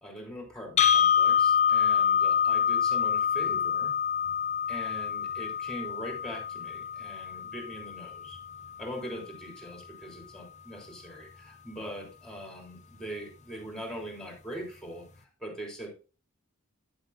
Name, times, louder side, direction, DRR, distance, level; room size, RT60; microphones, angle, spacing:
voice 1, 0.0-4.0 4.7-8.4 8.8-15.9, equal, 5° left, -1 dB, 3.2 m, -42 dB
sound 1, 0.8-8.8, left 8 dB, 35° left, 0.6 m, -26 dB
9.5 x 7.6 x 2.6 m, 0.34 s
head